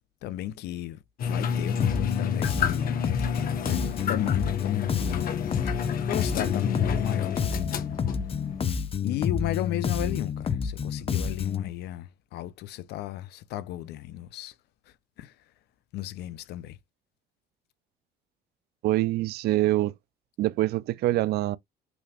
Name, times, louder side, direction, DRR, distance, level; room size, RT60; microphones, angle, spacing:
voice 1, 0.2-3.0 4.1-5.7 6.1-7.6 9.0-14.5 14.9-15.3 15.9-16.8, left 13 dB, 80° left, 0.7 m, -35 dB
sound 1, 1.2-8.6, left 7 dB, 60° left, 1.2 m, -30 dB
Bass guitar, 1.8-11.7, left 7 dB, 35° left, 0.8 m, -29 dB
voice 2, 18.8-19.9 20.4-21.6, right 16 dB, 70° right, 0.5 m, -25 dB
6.1 x 3.3 x 2.4 m
cardioid pair, 110°, 17 cm